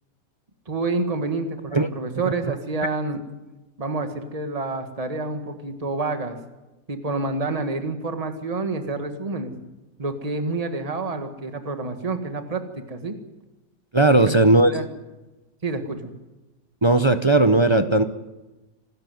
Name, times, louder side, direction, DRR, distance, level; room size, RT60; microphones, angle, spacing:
voice 1, 0.7-3.2 3.8-6.4 6.9-9.6 10.0-13.1 14.1-14.3 14.6-14.9 15.6-16.1, right 3 dB, 20° right, 6 dB, 1.8 m, -28 dB
voice 2, 13.9-14.7 16.8-18.0, right 2 dB, 40° right, 9 dB, 0.4 m, -17 dB
26.5 x 13.5 x 9.4 m, 1.1 s
omnidirectional pair, 1.9 m